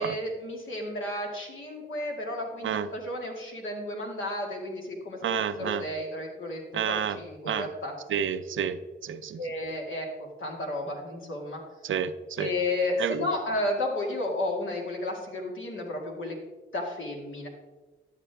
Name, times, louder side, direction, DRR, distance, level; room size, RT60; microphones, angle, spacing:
voice 1, 0.0-5.3 5.6-7.9 9.4-11.6 12.4-16.4 16.7-17.5, left 1 dB, 80° left, 0 dB, 2.0 m, -32 dB
voice 2, 5.2-5.9 6.7-7.2 7.5-7.7 8.1-9.4 11.8-12.5 13.0-13.3, right 8 dB, 75° right, 11 dB, 0.5 m, -30 dB
11.0 x 7.4 x 3.4 m, 1.3 s
cardioid pair, 60°, 20 cm